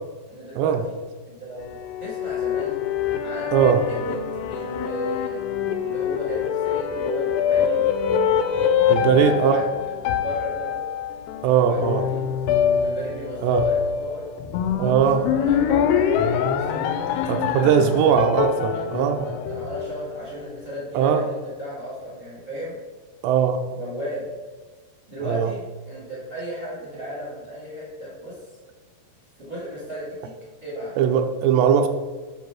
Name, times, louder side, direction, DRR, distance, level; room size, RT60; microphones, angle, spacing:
voice 1, 0.3-0.9 1.2-2.8 3.2-4.2 4.5-5.4 5.8-7.9 8.9-10.8 11.3-12.3 12.8-14.2 14.6-17.0 17.5-18.2 18.7-22.8 23.7-24.3 25.1-28.4 29.4-30.3 30.6-30.9, equal, 25° right, -6 dB, 2.7 m, -35 dB
sound 1, 1.6-20.2, left 8 dB, 80° left, 2.6 m, -24 dB
voice 2, 3.5-3.8 8.9-9.6 11.4-12.0 13.4-13.7 14.8-15.2 17.3-19.2 20.9-21.2 23.2-23.6 25.3-25.5 31.0-31.9, right 8 dB, 85° right, 6 dB, 2.8 m, -19 dB
9.4 x 4.8 x 6.0 m, 1.3 s
omnidirectional pair, 5.0 m